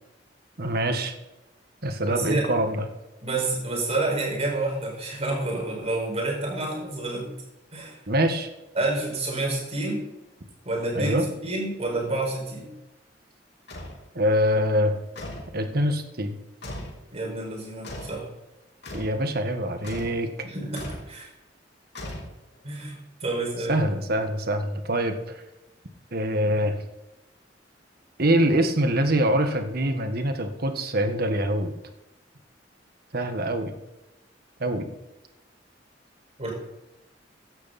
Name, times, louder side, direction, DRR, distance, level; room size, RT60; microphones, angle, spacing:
voice 1, 0.6-1.1 1.8-2.8 8.1-8.5 10.9-11.2 14.1-15.0 15.5-16.4 18.9-20.3 23.7-25.4 26.1-26.7 28.2-31.7 33.1-33.7 34.6-34.9, right 1 dB, 55° right, 6 dB, 1.6 m, -24 dB
voice 2, 2.1-2.5 3.2-7.3 7.7-8.0 8.7-10.0 10.6-12.7 17.1-18.3 20.4-21.3 22.6-23.9 36.4-36.5, right 2 dB, 35° right, -2 dB, 5.8 m, -29 dB
sound 1, 13.7-14.0 15.2-15.6 16.6-17.0 17.8-18.2 18.8-19.2 19.8-20.2 20.7-21.1 22.0-22.6, left 1 dB, 65° left, 3.8 m, -37 dB
16.5 x 11.0 x 4.3 m, 0.98 s
head